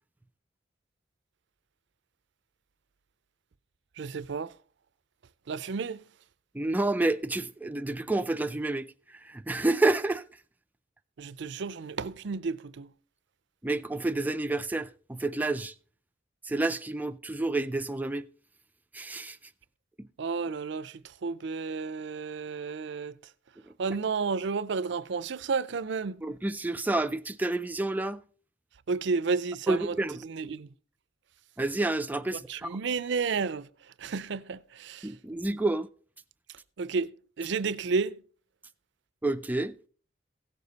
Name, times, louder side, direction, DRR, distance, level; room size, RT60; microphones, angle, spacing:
voice 1, 4.0-4.5 5.5-6.0 11.2-12.9 20.2-23.1 23.8-26.3 28.9-30.0 30.2-30.7 32.3-33.7 34.0-35.1 36.8-38.2, right 4 dB, 70° right, 0.5 m, -32 dB
voice 2, 6.5-8.9 9.2-10.2 13.6-15.7 16.5-18.3 18.9-19.4 20.0-20.1 26.2-28.2 29.7-30.2 31.6-32.7 35.0-35.9 39.2-39.8, right 2 dB, 10° right, 0.4 m, -29 dB
16.5 x 6.8 x 4.0 m
head